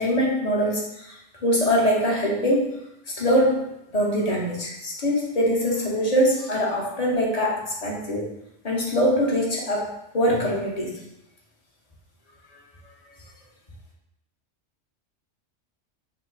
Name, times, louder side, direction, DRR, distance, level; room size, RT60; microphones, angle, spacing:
voice 1, 0.0-2.7 3.1-8.3 8.6-9.9 10.1-11.0, equal, 35° left, -3 dB, 0.9 m, -23 dB
5.5 x 2.1 x 3.9 m, 0.84 s
omnidirectional pair, 1.3 m